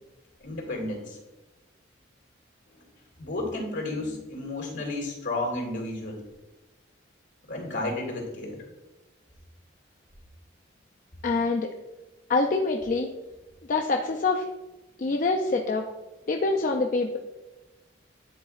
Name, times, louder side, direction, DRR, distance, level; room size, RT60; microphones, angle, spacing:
voice 1, 0.4-1.2 3.2-6.2 7.5-8.7, left 2 dB, 70° left, 0 dB, 2.2 m, -32 dB
voice 2, 11.2-11.7 12.3-13.1 13.7-14.5 15.0-15.9 16.3-17.2, left 3 dB, 45° left, 2 dB, 0.4 m, -25 dB
10.5 x 3.9 x 2.4 m, 1.1 s
head